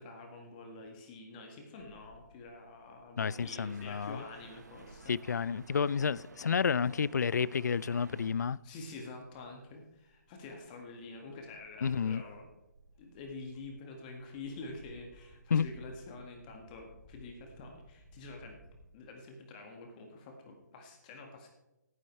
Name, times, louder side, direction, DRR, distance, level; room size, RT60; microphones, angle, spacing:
voice 1, 0.0-5.1 8.6-12.5 13.0-18.6 18.9-21.5, left 3 dB, 25° left, 1.7 m, -47 dB
Bird / Wind, 1.8-18.8, right 1 dB, 20° right, 4.8 m, -61 dB
voice 2, 3.2-4.2 5.1-8.6 11.8-12.2 15.5-15.7, left 6 dB, 65° left, 0.4 m, -30 dB
sound 1, 3.2-8.3, right 4 dB, 65° right, 1.3 m, -54 dB
16.0 x 9.3 x 3.2 m
figure-of-eight pair, 145°, 10 cm